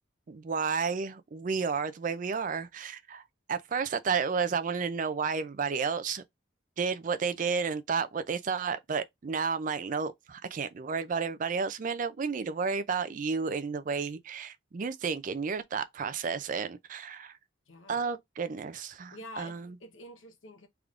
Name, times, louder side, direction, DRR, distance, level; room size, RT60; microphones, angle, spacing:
voice 1, 0.3-3.2 3.5-6.2 6.8-17.3 17.9-19.8, right 5 dB, 40° right, 0.4 m, -32 dB
voice 2, 17.7-18.1 19.1-20.7, left 1 dB, 85° left, 0.9 m, -47 dB
3.5 x 3.5 x 2.4 m
head